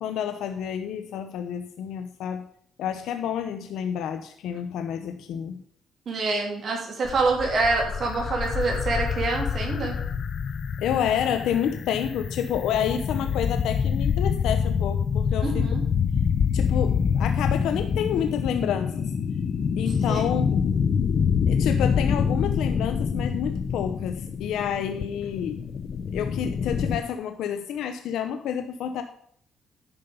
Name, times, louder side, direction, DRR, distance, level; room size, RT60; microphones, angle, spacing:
voice 1, 0.0-2.5 2.8-5.6 10.8-15.7 16.5-19.1 19.8-20.6 21.5-25.6 26.1-29.0, left 9 dB, 80° left, 7 dB, 0.8 m, -29 dB
voice 2, 6.1-9.9 15.4-15.8 20.1-20.2, right 3 dB, 55° right, 0 dB, 2.8 m, -26 dB
sound 1, 7.0-27.0, left 6 dB, 55° left, 0.9 m, -26 dB
10.5 x 5.6 x 6.9 m, 0.63 s
cardioid pair, 90°, 0 cm